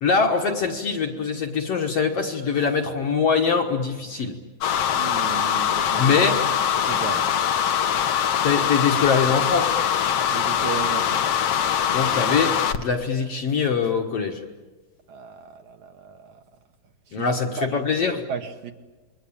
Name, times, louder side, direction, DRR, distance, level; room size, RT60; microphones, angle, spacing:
voice 1, 0.0-4.4 6.0-6.4 8.4-9.8 11.9-14.4 17.1-18.2, left 5 dB, 55° left, 3 dB, 2.1 m, -23 dB
sound 1, 4.6-12.8, left 8 dB, 75° left, 1.4 m, -23 dB
voice 2, 4.9-6.2 6.8-7.3 10.3-11.3 15.1-16.4 17.1-17.8 18.3-18.7, right 7 dB, 65° right, 5 dB, 2.3 m, -35 dB
28.5 x 23.0 x 8.7 m, 1.2 s
omnidirectional pair, 4.2 m